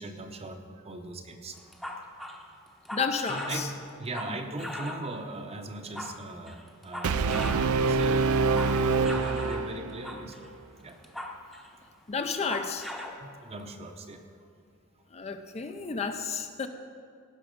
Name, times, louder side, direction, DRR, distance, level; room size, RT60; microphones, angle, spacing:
voice 1, 0.0-1.6 3.3-10.5 10.8-11.0 13.2-14.2, right 2 dB, 30° right, 6 dB, 0.8 m, -39 dB
sound 1, 1.6-5.2 5.7-7.7 8.1-9.7 10.0-10.5 10.9-11.8 12.2-13.2, left 1 dB, ahead, 0.8 m, -39 dB
voice 2, 2.9-3.7 4.3-4.4 12.1-12.9 15.1-16.7, left 5 dB, 30° left, 7 dB, 0.5 m, -31 dB
Brass instrument, 7.0-10.1, right 4 dB, 75° right, 0.5 m, -25 dB
17.0 x 5.8 x 5.1 m, 2.3 s
head